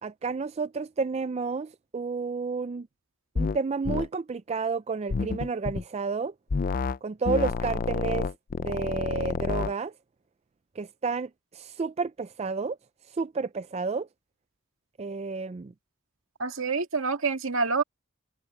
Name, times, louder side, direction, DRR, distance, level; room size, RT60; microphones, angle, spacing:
voice 1, 0.0-2.9 3.4-6.3 7.0-8.3 8.6-9.9 10.8-12.8 13.2-14.1 15.0-15.7, right 4 dB, 30° right, 0.4 m, -31 dB
sound 1, 3.4-3.6 3.9-4.1 5.1-5.8 6.5-7.0 7.3-9.7, left 4 dB, 40° left, 0.4 m, -29 dB
voice 2, 16.4-17.8, right 4 dB, 75° right, 2.1 m, -27 dB
head